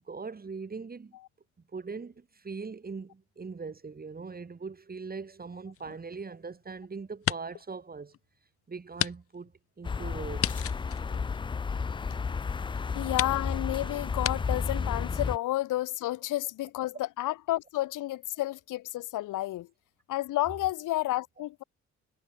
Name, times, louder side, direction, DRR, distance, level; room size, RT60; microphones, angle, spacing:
voice 1, 0.1-1.1 1.7-8.1 8.7-10.6, right 4 dB, 30° right, 4.0 m, -41 dB
sound 1, 5.7-6.7 7.1-7.7 8.1-8.2 8.9-9.1 9.4-9.5 10.4-12.0 12.6-12.7 13.1-13.4 14.2-14.4, left 11 dB, 50° left, 0.6 m, -33 dB
sound 2, 9.8-15.4, left 5 dB, 15° left, 0.3 m, -32 dB
voice 2, 12.9-19.7 20.1-21.6, left 16 dB, 90° left, 3.0 m, -31 dB
cardioid pair, 90°, 30 cm